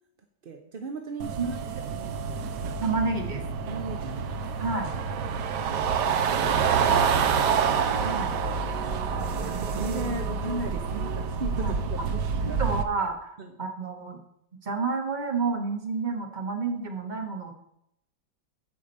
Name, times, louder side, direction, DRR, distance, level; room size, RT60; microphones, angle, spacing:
voice 1, 0.4-1.6 1.9-2.4 3.7-4.2 9.4-12.2 12.5-12.6 13.4-13.5, right 2 dB, 45° right, 4 dB, 0.7 m, -37 dB
sound 1, 1.2-12.8, right 6 dB, 70° right, 1.4 m, -27 dB
voice 2, 2.6-3.4 4.6-4.9 8.0-8.3 11.6-12.0 12.4-14.2 14.6-17.6, right 4 dB, 30° right, 3 dB, 1.2 m, -30 dB
9.4 x 5.1 x 7.9 m, 0.76 s
omnidirectional pair, 2.0 m